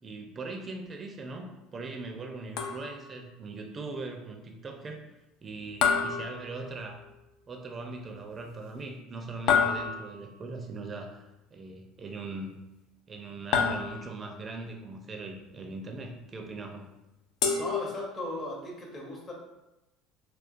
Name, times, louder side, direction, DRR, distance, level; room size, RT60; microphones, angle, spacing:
voice 1, 0.0-5.0 5.4-7.0 7.5-12.6 13.1-16.9, right 3 dB, 35° right, 3 dB, 0.4 m, -40 dB
sound 1, 2.6-3.2 5.8-7.1 9.5-10.4 13.5-14.3 17.4-18.4, left 6 dB, 65° left, 0.4 m, -29 dB
voice 2, 17.6-19.3, left 1 dB, 30° left, -2 dB, 0.8 m, -37 dB
3.7 x 2.3 x 2.5 m, 0.97 s
hypercardioid pair, 70°, 0 cm